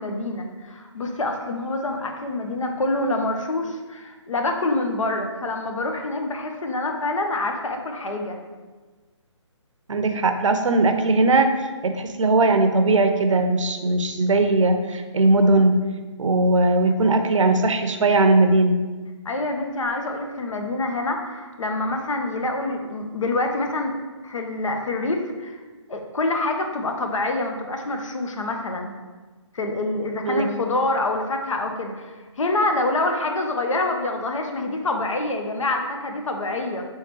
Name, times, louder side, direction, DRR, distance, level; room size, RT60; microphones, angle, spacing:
voice 1, 0.0-8.4 19.2-23.9 24.2-25.6 25.9-28.9 29.5-36.9, left 2 dB, 80° left, 4 dB, 0.7 m, -26 dB
voice 2, 9.9-11.5 11.8-15.7 16.2-18.8 30.2-30.5, right 2 dB, 80° right, 7 dB, 0.6 m, -19 dB
4.6 x 3.2 x 3.1 m, 1.3 s
hypercardioid pair, 160°, 16 cm